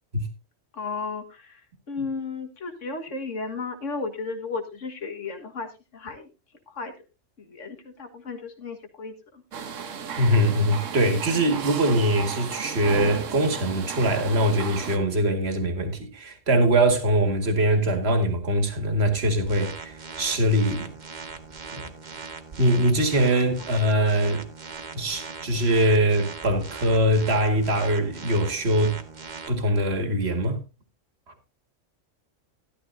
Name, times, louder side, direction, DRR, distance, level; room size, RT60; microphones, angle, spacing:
voice 1, 0.7-1.6 1.9-6.3 6.7-6.9 7.4-9.4, left 4 dB, 75° left, 1.9 m, -34 dB
sound 1, 9.5-15.0, right 7 dB, 80° right, 1.4 m, -34 dB
voice 2, 10.2-20.9 21.7-21.9 22.6-24.4 24.9-29.0 29.5-30.6, right 1 dB, 55° right, 2.1 m, -22 dB
sound 2, 19.5-29.5, right 5 dB, 40° right, 1.2 m, -40 dB
13.0 x 12.5 x 2.6 m
omnidirectional pair, 1.3 m